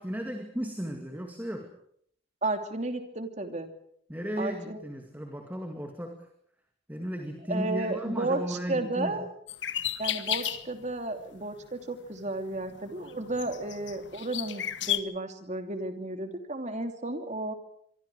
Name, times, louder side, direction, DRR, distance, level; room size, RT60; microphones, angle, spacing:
voice 1, 0.0-1.7 4.1-6.3 6.9-9.2, equal, 10° right, 4 dB, 2.3 m, -35 dB
voice 2, 2.4-3.7 4.4-4.8 7.5-9.3 10.0-17.5, right 2 dB, 35° right, 6 dB, 2.9 m, -33 dB
sound 1, 9.5-10.9 11.4-11.6 12.3-15.0, left 11 dB, 65° left, 1.3 m, -33 dB
25.5 x 24.0 x 4.9 m, 0.65 s
head